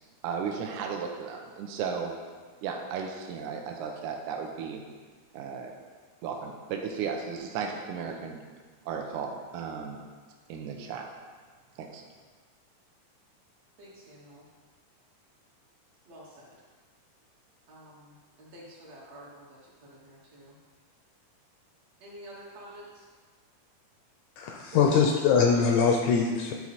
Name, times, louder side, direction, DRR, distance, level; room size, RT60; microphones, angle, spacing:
voice 1, 0.2-2.1 2.6-4.8 5.3-5.7 6.2-8.4 8.9-10.0 10.5-11.0 11.8-12.0, right 6 dB, 75° right, 2 dB, 2.1 m, -35 dB
voice 2, 13.8-14.5 16.1-16.6 17.7-20.6 22.0-23.1, equal, 60° right, -5 dB, 2.2 m, -49 dB
voice 3, 24.4-26.5, left 6 dB, 80° left, 2 dB, 1.7 m, -23 dB
11.0 x 4.5 x 4.2 m, 1.5 s
omnidirectional pair, 3.8 m